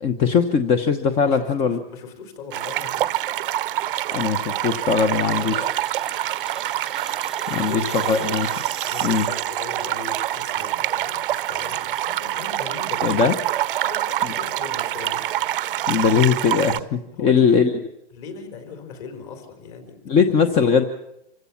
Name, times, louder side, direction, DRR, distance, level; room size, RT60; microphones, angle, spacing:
voice 1, 0.0-1.8 4.1-5.7 7.5-8.5 9.0-9.3 13.0-13.3 14.2-14.3 15.9-17.7 20.1-20.8, left 6 dB, 20° left, 9 dB, 0.9 m, -20 dB
voice 2, 1.2-3.2 5.1-5.7 7.5-8.4 8.9-13.3 13.8-15.3 17.1-17.7 18.1-20.4, left 5 dB, 40° left, 6 dB, 4.5 m, -39 dB
sound 1, 2.5-16.8, right 13 dB, 65° right, 0.8 m, -26 dB
sound 2, 5.0-9.8, right 4 dB, ahead, 0.9 m, -40 dB
26.0 x 16.0 x 7.2 m, 0.83 s
hypercardioid pair, 160°, 30 cm